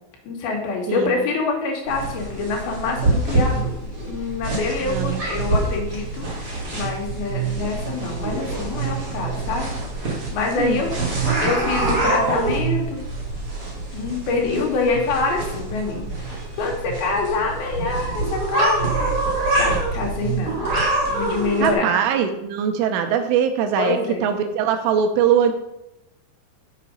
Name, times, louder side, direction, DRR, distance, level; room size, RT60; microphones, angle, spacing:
voice 1, 0.2-9.7 10.3-10.9 11.4-13.0 13.9-16.0 16.5-19.1 19.6-20.7 21.0-21.9 23.8-24.3, left 3 dB, 55° left, -1 dB, 3.5 m, -25 dB
sound 1, 1.9-21.7, right 2 dB, 45° right, 1.3 m, -25 dB
voice 2, 4.8-5.2 10.6-10.8 21.6-25.5, right 8 dB, 80° right, 7 dB, 3.4 m, -21 dB
7.7 x 7.4 x 5.4 m, 0.88 s
omnidirectional pair, 5.8 m